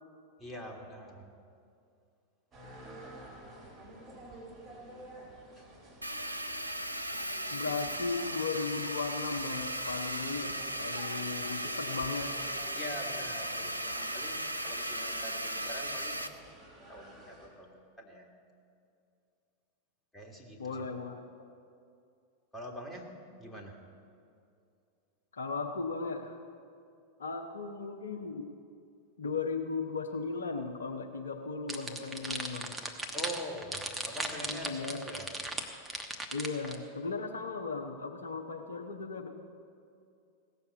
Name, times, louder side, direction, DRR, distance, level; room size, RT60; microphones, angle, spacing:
voice 1, 0.4-1.3 5.6-5.7 12.7-18.4 20.1-20.9 22.5-23.1 23.4-23.8 33.1-35.3, equal, 10° left, 0 dB, 2.0 m, -44 dB
sound 1, 2.5-17.5, right 1 dB, 30° right, 3.7 m, -51 dB
sound 2, 6.0-16.3, right 1 dB, 85° right, 0.6 m, -36 dB
voice 2, 7.5-12.3 20.6-21.2 25.3-26.4 27.2-28.4 29.2-32.7 34.4-35.0 36.3-39.3, left 4 dB, 70° left, 4 dB, 0.8 m, -36 dB
sound 3, 31.7-36.8, right 2 dB, 10° right, 1.1 m, -37 dB
16.5 x 7.0 x 7.9 m, 2.5 s
figure-of-eight pair, 90°, 0 cm